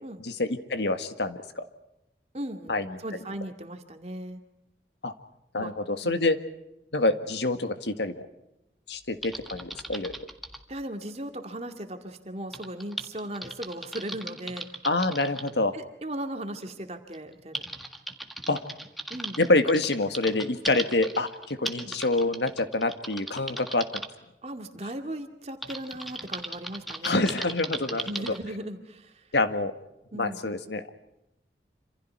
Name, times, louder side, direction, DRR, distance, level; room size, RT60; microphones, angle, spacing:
voice 1, 0.2-1.7 2.7-3.0 5.0-5.1 5.5-6.4 6.9-8.3 8.9-10.1 14.8-15.8 18.5-18.6 19.4-24.0 27.0-28.1 29.3-29.7 30.1-30.9, left 2 dB, 75° left, 9 dB, 1.8 m, -26 dB
voice 2, 2.3-4.4 5.6-5.7 6.0-6.1 10.7-14.7 15.7-17.6 19.1-19.4 21.8-21.9 24.4-27.3 28.0-29.3 30.1-30.4, right 1 dB, 35° right, 6 dB, 2.3 m, -37 dB
Typing, 9.2-10.6 12.5-15.5 16.6-16.7 17.1-24.1 25.6-28.4, right 1 dB, ahead, 1.7 m, -38 dB
27.5 x 27.0 x 4.7 m, 0.89 s
head